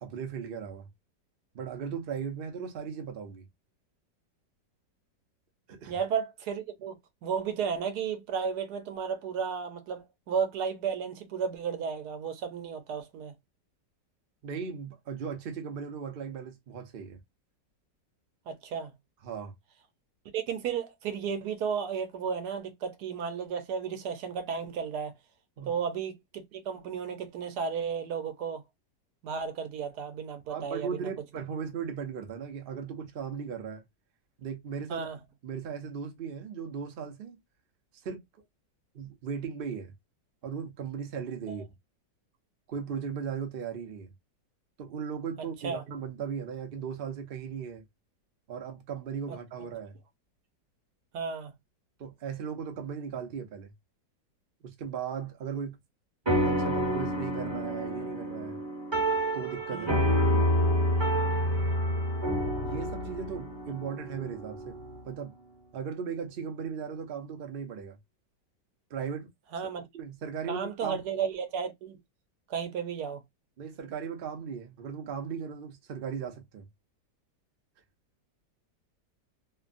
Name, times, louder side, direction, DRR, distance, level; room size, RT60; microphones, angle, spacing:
voice 1, 0.0-0.9 1.5-3.4 5.7-6.0 14.4-17.2 19.2-19.5 25.6-25.7 30.5-33.8 34.4-35.1 35.4-37.4 38.0-38.2 38.9-39.9 40.4-41.6 42.7-44.1 44.8-47.8 48.5-50.0 52.0-53.7 54.6-55.8 56.4-58.6 59.3-59.9 62.6-64.8 65.0-65.3 65.7-68.0 68.9-69.3 69.9-71.0 73.6-76.7, right 6 dB, 85° right, 0.4 m, -37 dB
voice 2, 5.9-6.9 7.2-13.3 18.5-18.9 20.3-25.1 25.6-28.6 29.2-31.1 34.9-35.2 45.6-45.8 51.1-51.5 59.7-60.0 69.5-69.9 70.5-72.0 72.5-73.2, right 6 dB, 70° right, 1.1 m, -33 dB
sound 1, 56.3-65.0, equal, 20° right, 0.8 m, -28 dB
3.0 x 2.2 x 2.4 m
omnidirectional pair, 1.9 m